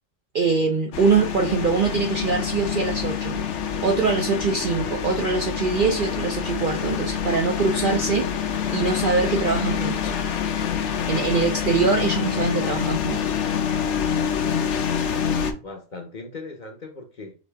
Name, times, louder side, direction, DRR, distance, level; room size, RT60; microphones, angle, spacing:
voice 1, 0.3-3.4 3.8-8.3 8.7-10.1 11.1-13.3, right 4 dB, 55° right, 0.6 m, -23 dB
sound 1, 0.9-15.5, left 8 dB, 65° left, 0.9 m, -26 dB
voice 2, 15.2-17.4, left 3 dB, 45° left, 0.7 m, -39 dB
5.1 x 2.7 x 3.3 m
omnidirectional pair, 1.4 m